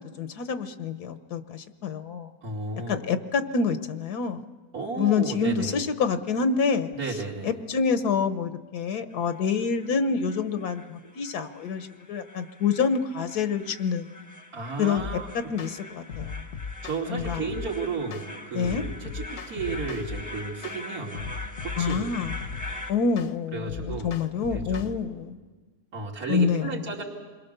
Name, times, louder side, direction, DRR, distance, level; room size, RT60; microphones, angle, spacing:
voice 1, 0.0-2.3 2.9-4.4 5.0-7.2 7.4-14.1 14.8-15.0 15.5-16.4 17.1-17.4 18.5-18.8 21.8-22.4 22.9-25.4 26.3-26.8, left 5 dB, 70° left, 10 dB, 1.4 m, -27 dB
voice 2, 2.4-3.0 4.7-5.8 6.9-7.5 14.5-15.3 16.8-21.3 21.6-22.1 23.5-24.1 24.5-25.0 25.9-27.0, right 4 dB, 60° right, -2 dB, 3.2 m, -33 dB
sound 1, 9.1-22.9, left 1 dB, 15° left, 1.0 m, -43 dB
sound 2, 15.0-15.2 15.6-15.8 16.1-17.7 18.1-18.3 18.6-20.2 20.6-20.8 21.1-22.8 23.2-23.3 23.7-24.9, left 5 dB, 50° left, 1.1 m, -37 dB
28.5 x 22.0 x 6.7 m, 1.4 s
omnidirectional pair, 1.7 m